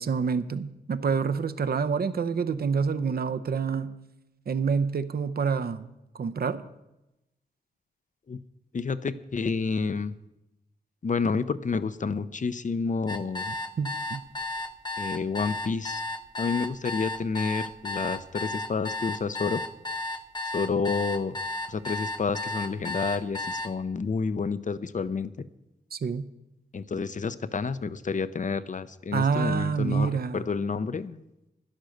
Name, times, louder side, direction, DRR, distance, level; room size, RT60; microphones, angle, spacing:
voice 1, 0.0-3.9 4.5-5.9 6.2-6.7 13.8-14.2 25.9-26.3 29.1-30.4, right 5 dB, 60° right, 13 dB, 0.7 m, -27 dB
voice 2, 8.7-10.1 11.0-13.5 15.0-16.0 16.4-19.6 20.5-21.4 21.7-25.5 26.7-31.2, left 5 dB, 45° left, 15 dB, 0.7 m, -29 dB
sound 1, 13.1-23.7, left 2 dB, 25° left, 1.0 m, -33 dB
11.5 x 10.5 x 6.5 m, 0.92 s
cardioid pair, 75°, 18 cm